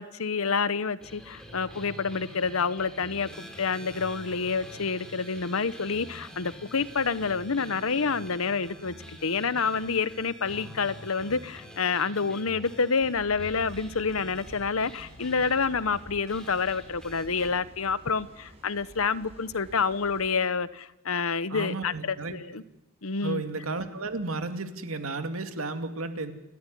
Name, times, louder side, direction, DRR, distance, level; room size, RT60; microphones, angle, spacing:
voice 1, 0.0-8.9 9.2-22.6 23.0-23.4, left 5 dB, 80° left, 16 dB, 1.0 m, -28 dB
sound 1, 1.0-17.5, equal, 5° left, 4.4 m, -46 dB
sound 2, 13.0-20.4, equal, 30° right, 5.8 m, -51 dB
voice 2, 21.5-22.4 23.2-26.3, right 3 dB, 85° right, 7 dB, 2.4 m, -33 dB
29.5 x 13.5 x 10.0 m, 0.92 s
head